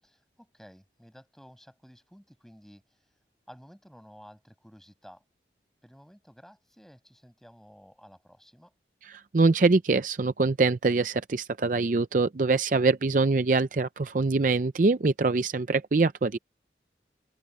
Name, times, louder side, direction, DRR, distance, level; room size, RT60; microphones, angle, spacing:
voice 1, 0.0-3.1 3.5-5.2 5.8-8.7, equal, ahead, 7.2 m, -53 dB
voice 2, 9.3-16.4, right 3 dB, 45° right, 0.5 m, -24 dB
open air
head